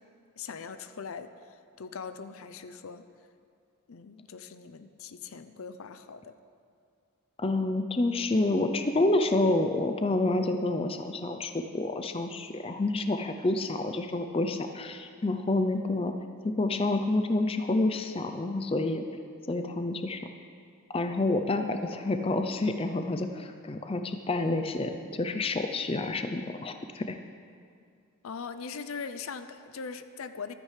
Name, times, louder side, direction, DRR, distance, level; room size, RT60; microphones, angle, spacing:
voice 1, 0.4-3.0 3.9-6.3 28.2-30.5, left 5 dB, 70° left, 11 dB, 0.5 m, -41 dB
voice 2, 7.4-16.1 16.4-19.0 19.5-20.2 20.9-27.2, left 2 dB, 25° left, 6 dB, 0.4 m, -28 dB
15.0 x 13.0 x 3.3 m, 2.3 s
head